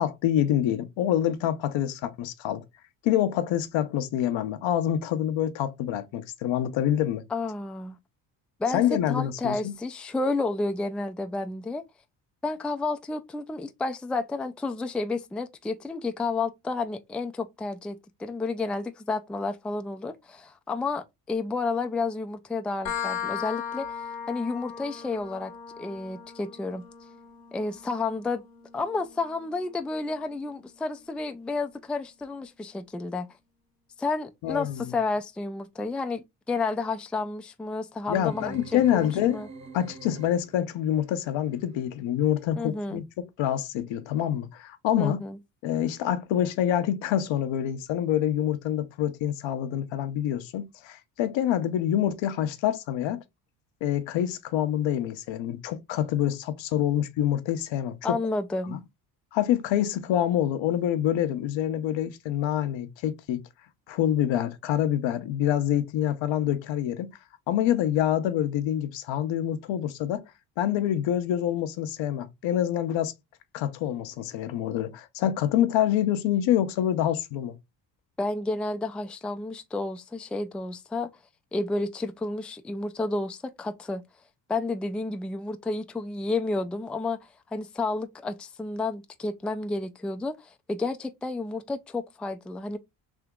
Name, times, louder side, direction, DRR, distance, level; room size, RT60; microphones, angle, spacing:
voice 1, 0.0-2.6 3.0-7.2 8.7-9.7 34.4-34.9 38.1-39.4 39.7-45.2 45.6-53.2 53.8-58.2 58.7-58.8 59.3-63.4 63.9-67.1 67.5-70.2 70.6-73.1 73.5-77.6, left 11 dB, 65° left, 0.9 m, -26 dB
voice 2, 7.3-8.0 8.6-11.8 12.4-23.9 24.3-26.8 27.5-28.4 28.7-33.3 34.0-39.5 42.6-43.0 45.0-45.4 58.0-58.8 78.2-81.1 81.5-84.0 84.5-87.2 87.5-92.8, left 3 dB, ahead, 0.4 m, -31 dB
sound 1, 22.9-30.3, left 8 dB, 85° left, 1.1 m, -38 dB
sound 2, 38.1-40.7, right 5 dB, 35° right, 1.2 m, -44 dB
3.6 x 2.8 x 3.6 m
supercardioid pair, 65°, 48 cm